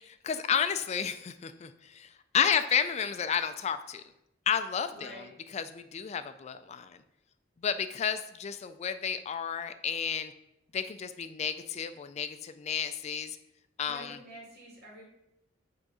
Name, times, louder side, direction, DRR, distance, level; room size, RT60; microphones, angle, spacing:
voice 1, 0.0-4.0 4.5-5.2 5.5-7.0 7.6-10.3 10.7-13.4 13.8-14.2, left 7 dB, 35° left, 10 dB, 0.3 m, -31 dB
voice 2, 4.9-5.3 13.9-15.0, right 1 dB, 60° right, -4 dB, 2.4 m, -47 dB
7.6 x 3.7 x 4.8 m, 0.83 s
head